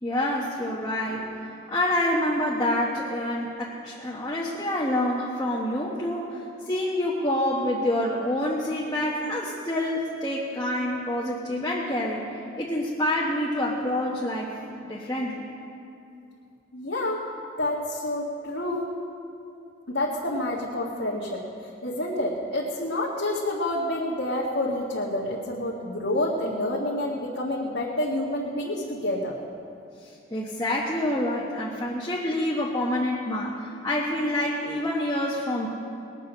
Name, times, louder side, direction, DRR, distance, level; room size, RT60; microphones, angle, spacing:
voice 1, 0.0-12.3 12.6-15.5 30.0-35.7, left 1 dB, 20° left, -5 dB, 1.2 m, -27 dB
voice 2, 16.7-17.2 17.6-18.9 19.9-29.4, left 1 dB, 80° left, -7 dB, 1.9 m, -28 dB
20.5 x 8.3 x 6.4 m, 2.6 s
head